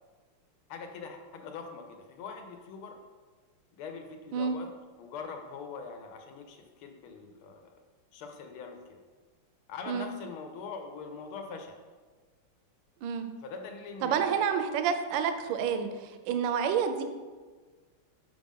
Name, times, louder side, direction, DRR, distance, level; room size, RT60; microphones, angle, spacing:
voice 1, 0.7-3.0 3.8-4.7 5.0-7.7 8.1-9.0 9.7-11.8 13.4-14.4, left 5 dB, 85° left, 4 dB, 1.6 m, -42 dB
voice 2, 13.0-13.3 14.0-17.0, right 7 dB, 75° right, 8 dB, 1.2 m, -29 dB
5.9 x 5.0 x 3.6 m, 1.4 s
omnidirectional pair, 2.3 m